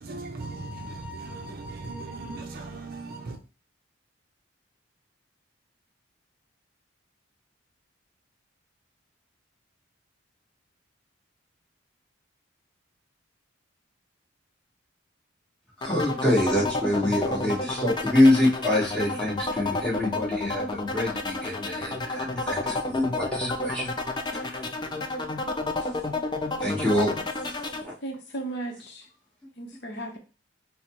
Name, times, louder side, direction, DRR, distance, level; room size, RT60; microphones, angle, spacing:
voice 1, 0.0-3.4, right 2 dB, 45° right, 0.5 m, -38 dB
sound 1, 15.8-27.8, left 2 dB, 20° left, 0.4 m, -30 dB
voice 2, 15.8-23.9 24.3-24.6 25.8-25.9 26.6-27.3 27.8-27.9, left 1 dB, 5° left, 1.3 m, -25 dB
voice 3, 28.0-29.0 29.6-30.2, right 2 dB, 55° left, 0.7 m, -35 dB
4.1 x 2.1 x 4.4 m
head